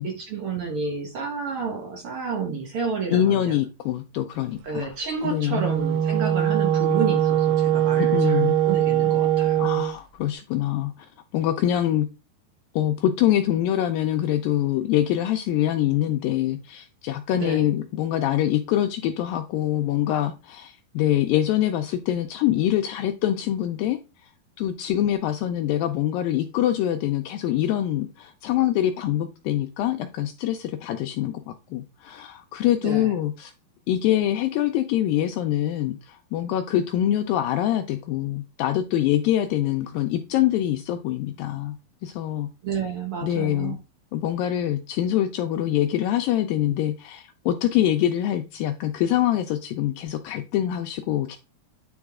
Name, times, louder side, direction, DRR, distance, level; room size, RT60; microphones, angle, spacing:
voice 1, 0.0-3.5 4.6-9.6 17.3-17.6 32.8-33.1 42.6-43.8, right 5 dB, 65° right, 1.4 m, -30 dB
voice 2, 3.1-4.9 5.2-5.6 8.0-8.6 9.6-11.1 11.3-12.1 12.7-24.3 24.6-33.5 33.9-41.8 42.0-42.5 43.2-43.8 44.1-51.4, left 12 dB, 80° left, 2.1 m, -24 dB
Wind instrument woodwind instrument, 5.4-10.0, right 11 dB, 90° right, 2.7 m, -21 dB
9.6 x 3.9 x 3.6 m
omnidirectional pair, 4.5 m